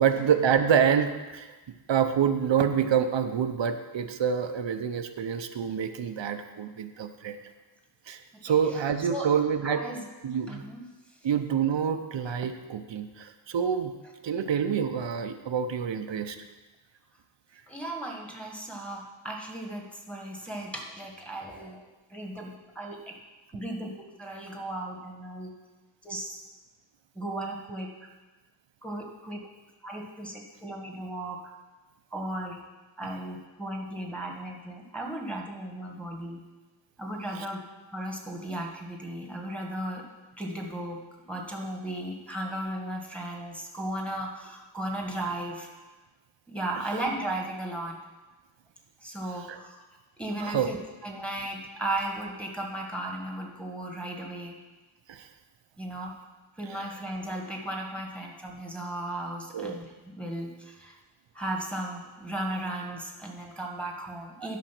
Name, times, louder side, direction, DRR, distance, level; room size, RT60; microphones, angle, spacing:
voice 1, 0.0-1.5 1.9-7.4 8.1-9.8 10.2-10.6 11.2-13.9 14.2-16.4 37.3-37.5 49.5-49.6 50.4-50.7 55.1-55.3 56.7-56.8 59.5-59.8 64.4-64.5, right 7 dB, 75° right, 8 dB, 0.7 m, -27 dB
voice 2, 9.6-10.0 10.5-10.8 17.7-23.1 23.5-25.5 26.0-26.4 27.1-27.9 28.8-29.4 29.8-31.4 32.1-32.6 33.0-36.4 37.0-37.6 37.9-40.0 40.4-41.0 41.3-45.7 46.5-48.0 49.0-49.8 50.2-50.8 51.0-54.5 55.8-56.1 56.6-60.9 61.3-64.6, right 1 dB, 5° left, -1 dB, 1.7 m, -36 dB
12.0 x 5.1 x 5.9 m, 1.2 s
wide cardioid pair, 100°, 44 cm